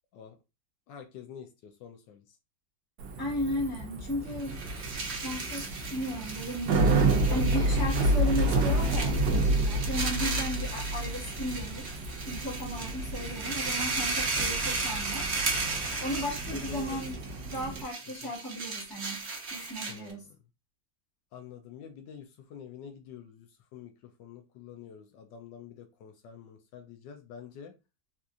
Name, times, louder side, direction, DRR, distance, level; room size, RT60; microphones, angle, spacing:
voice 1, 0.9-2.4 10.2-10.9 16.5-17.0 18.2-18.3 19.9-20.4 21.3-27.7, left 8 dB, 75° left, 1.2 m, -47 dB
Bicycle, 3.0-17.8, right 2 dB, 70° right, 1.1 m, -30 dB
voice 2, 3.2-4.6 5.1-11.9 12.3-15.3 16.0-17.2 17.5-20.3, equal, 15° left, 1.1 m, -35 dB
sound 1, 4.3-20.1, right 3 dB, 50° right, 0.9 m, -35 dB
4.2 x 2.5 x 2.4 m
omnidirectional pair, 2.0 m